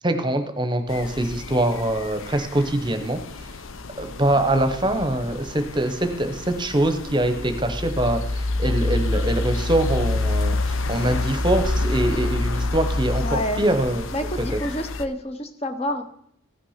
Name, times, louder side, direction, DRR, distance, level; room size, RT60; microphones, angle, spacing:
voice 1, 0.0-3.2 4.0-14.1, right 1 dB, 20° right, 7 dB, 0.9 m, -23 dB
sound 1, 0.9-15.0, left 2 dB, 75° left, 0.7 m, -28 dB
voice 2, 13.2-13.6 14.1-16.0, equal, 30° left, 8 dB, 0.8 m, -28 dB
15.5 x 6.0 x 5.7 m, 0.72 s
head